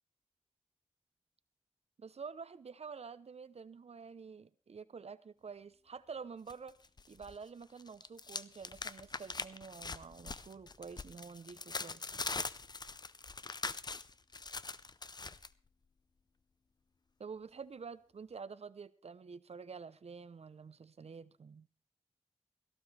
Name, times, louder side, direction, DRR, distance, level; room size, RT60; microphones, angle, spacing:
voice 1, 2.0-6.8 7.1-12.1 17.2-21.7, right 5 dB, 75° right, 0.8 m, -48 dB
sound 1, 6.5-7.4 7.6-15.5, left 3 dB, 40° left, 0.6 m, -42 dB
17.0 x 14.5 x 3.4 m
wide cardioid pair, 75°, 11 cm